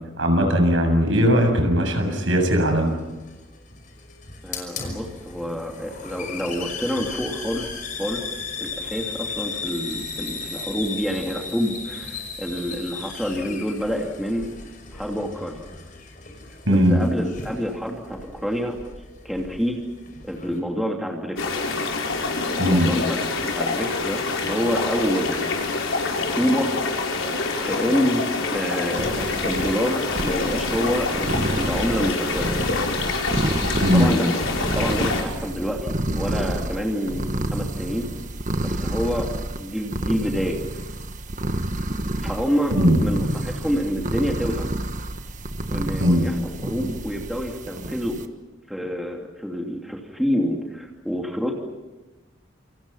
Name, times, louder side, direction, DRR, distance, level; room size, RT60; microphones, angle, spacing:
voice 1, 0.2-3.0 16.7-17.0 22.6-22.9 33.8-34.1 42.8-43.0 46.0-46.2, equal, 75° right, 4 dB, 7.3 m, -19 dB
Hiss, 2.7-20.6, left 4 dB, 40° left, 5.7 m, -36 dB
voice 2, 4.4-7.7 8.0-8.2 8.6-14.5 14.9-15.6 16.7-18.8 19.2-19.8 20.2-21.7 22.6-25.4 26.3-26.7 27.6-28.3 28.5-32.5 33.9-34.4 34.7-38.1 38.6-39.3 39.6-40.6 42.2-42.8 43.0-44.7 45.7-46.3 46.6-48.2 48.7-51.5, equal, ahead, 0 dB, 2.9 m, -27 dB
sound 1, 21.4-35.2, left 3 dB, 85° left, 5.3 m, -26 dB
sound 2, 29.0-48.2, right 1 dB, 40° right, 1.4 m, -29 dB
28.5 x 27.5 x 5.8 m, 1.2 s
head